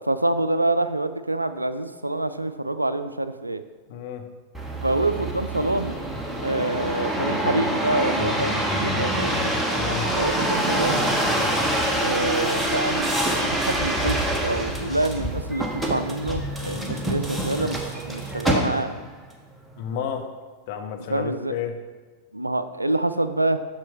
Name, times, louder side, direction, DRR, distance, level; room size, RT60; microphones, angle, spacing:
voice 1, 0.0-3.6 4.8-6.0 6.4-9.5 10.2-11.1 12.0-13.1 13.4-18.9 21.1-21.5 22.3-23.6, right 2 dB, 85° right, 12 dB, 0.3 m, -26 dB
voice 2, 3.9-4.3 9.7-10.1 19.8-20.3 20.7-21.8, left 8 dB, 50° left, 5 dB, 0.8 m, -31 dB
sound 1, 4.5-19.1 19.7-20.2, right 1 dB, 10° right, 1.1 m, -26 dB
7.5 x 6.1 x 4.4 m, 1.3 s
figure-of-eight pair, 90°, 0 cm